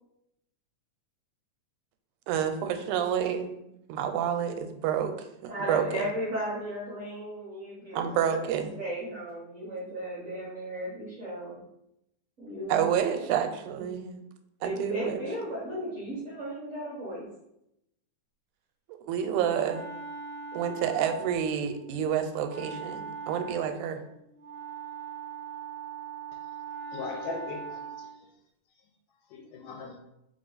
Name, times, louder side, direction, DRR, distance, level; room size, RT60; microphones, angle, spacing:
voice 1, 2.3-3.6 3.9-5.1 5.4-6.0 7.9-8.7 12.7-14.2 14.6-15.2 18.9-19.9 20.5-24.0, right 9 dB, 90° right, 7 dB, 2.0 m, -29 dB
voice 2, 5.4-8.4 8.8-11.6 12.4-13.3 14.6-17.3, equal, 70° right, -7 dB, 0.7 m, -35 dB
Wind instrument woodwind instrument, 19.1-28.2, right 5 dB, 35° right, 0.9 m, -41 dB
voice 3, 26.9-28.1 29.3-30.0, left 4 dB, 80° left, 3 dB, 1.8 m, -38 dB
4.1 x 3.3 x 3.9 m, 0.82 s
omnidirectional pair, 3.4 m